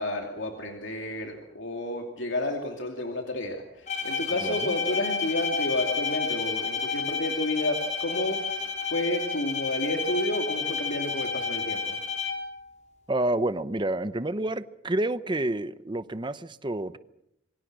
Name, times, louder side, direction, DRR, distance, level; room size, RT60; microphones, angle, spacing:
voice 1, 0.0-12.0, left 1 dB, 70° left, 2.7 m, -31 dB
Bowed string instrument, 3.9-12.6, left 5 dB, 35° left, 4.3 m, -31 dB
voice 2, 4.4-4.8 13.1-17.0, right 1 dB, 25° right, 0.8 m, -29 dB
27.0 x 23.5 x 6.2 m
head